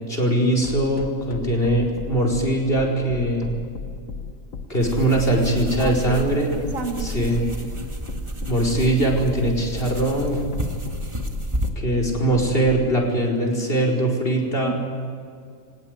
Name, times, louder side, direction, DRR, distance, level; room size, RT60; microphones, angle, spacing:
voice 1, 0.1-3.5 4.7-6.5 7.0-7.4 8.5-10.4 11.8-14.7, right 1 dB, 40° left, 1 dB, 5.0 m, -21 dB
sound 1, 0.6-12.9, left 5 dB, 70° left, 1.6 m, -34 dB
sound 2, 4.8-11.7, right 1 dB, 20° right, 1.9 m, -31 dB
voice 2, 5.8-6.2 6.5-7.6 14.6-14.7, right 4 dB, 70° right, 5 dB, 2.3 m, -31 dB
24.5 x 18.5 x 9.5 m, 2.2 s
omnidirectional pair, 1.4 m